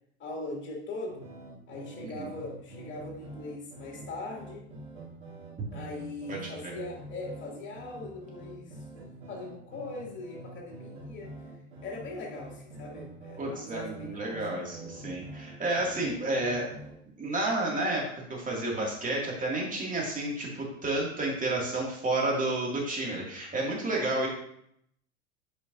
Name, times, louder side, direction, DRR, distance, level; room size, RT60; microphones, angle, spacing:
voice 1, 0.2-1.2 1.7-4.6 5.7-8.8 9.3-11.3 11.8-14.4, left 2 dB, 30° left, -2 dB, 2.5 m, -40 dB
sound 1, 1.1-16.9, right 2 dB, 80° right, 2.3 m, -46 dB
voice 2, 6.3-6.7 13.4-16.7 17.2-24.3, right 2 dB, 20° right, -2 dB, 2.3 m, -31 dB
8.5 x 5.1 x 2.6 m, 0.71 s
hypercardioid pair, 85°, 36 cm